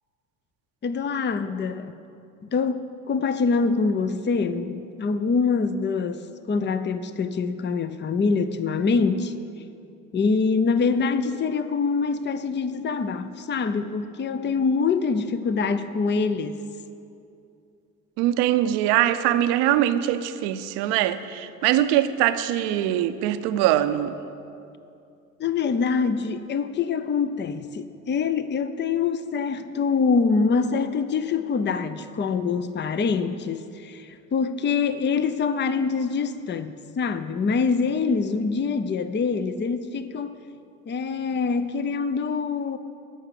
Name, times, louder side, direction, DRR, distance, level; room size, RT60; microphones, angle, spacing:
voice 1, 0.8-1.9 2.5-9.3 10.1-16.6 25.4-40.4 40.9-42.8, left 5 dB, 25° left, 0.6 m, -25 dB
voice 2, 18.2-24.1, right 12 dB, 70° right, 0.7 m, -22 dB
13.5 x 5.8 x 7.4 m
hypercardioid pair, 60°, 41 cm